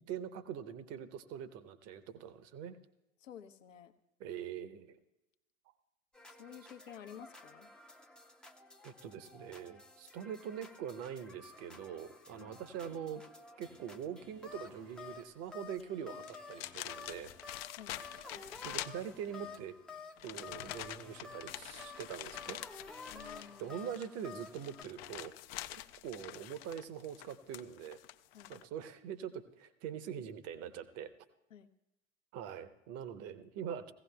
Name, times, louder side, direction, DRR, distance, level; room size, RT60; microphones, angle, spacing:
voice 1, 0.0-2.8 4.2-5.0 8.8-13.2 13.6-17.3 18.4-19.8 20.2-22.6 23.6-25.3 25.7-28.0 28.5-31.1 32.3-33.9, right 8 dB, 40° right, 13 dB, 0.8 m, -43 dB
voice 2, 3.2-3.9 6.3-7.7 12.4-12.6 17.8-18.0 23.1-23.7 28.3-28.6 31.5-31.7, left 9 dB, 70° left, 8 dB, 0.8 m, -52 dB
sound 1, 6.1-24.8, left 4 dB, ahead, 0.5 m, -52 dB
sound 2, 15.7-15.8 16.2-19.6 20.2-28.6, left 15 dB, 50° left, 0.5 m, -46 dB
17.5 x 16.0 x 2.3 m, 0.94 s
figure-of-eight pair, 80°, 39 cm